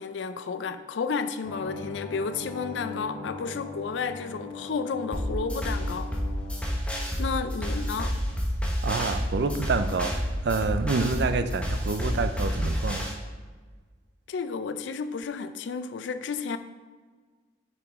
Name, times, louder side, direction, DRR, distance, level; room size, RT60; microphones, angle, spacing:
voice 1, 0.0-6.1 7.2-8.2 14.3-16.6, left 5 dB, 70° left, 11 dB, 0.4 m, -32 dB
sound 1, 1.4-6.6, left 3 dB, 50° left, 1.5 m, -39 dB
sound 2, 5.1-13.1, equal, 5° left, 0.9 m, -29 dB
voice 2, 8.8-13.1, right 4 dB, 60° right, 10 dB, 0.4 m, -28 dB
8.3 x 4.9 x 3.5 m, 1.4 s
head